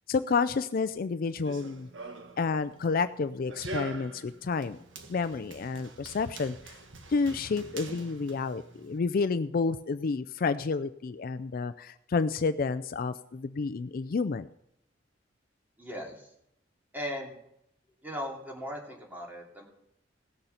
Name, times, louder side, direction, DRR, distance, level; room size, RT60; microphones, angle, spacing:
voice 1, 0.1-1.9 2.4-4.8 5.1-6.8 7.1-14.5, left 4 dB, 50° left, 13 dB, 0.4 m, -30 dB
Run, 1.3-9.0, right 2 dB, 85° right, 1.4 m, -44 dB
voice 2, 15.8-16.3 16.9-17.3 18.0-19.6, equal, 10° right, -1 dB, 2.6 m, -38 dB
18.0 x 6.7 x 5.7 m, 0.79 s
head